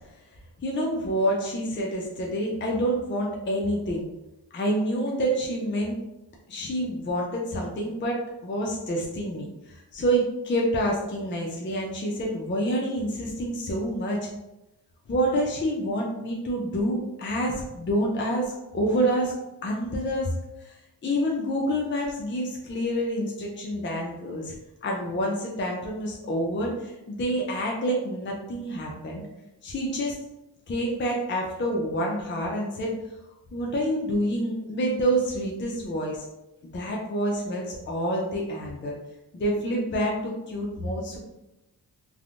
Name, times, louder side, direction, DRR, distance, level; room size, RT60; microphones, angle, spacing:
voice 1, 0.6-4.1 4.5-6.0 6.5-14.3 15.1-19.3 19.6-20.7 21.0-24.5 24.8-29.2 29.6-30.2 30.7-32.9 33.5-36.2 36.7-39.0 39.3-41.2, equal, 30° left, -2 dB, 0.5 m, -27 dB
3.4 x 2.1 x 2.5 m, 0.93 s
cardioid pair, 95°, 40 cm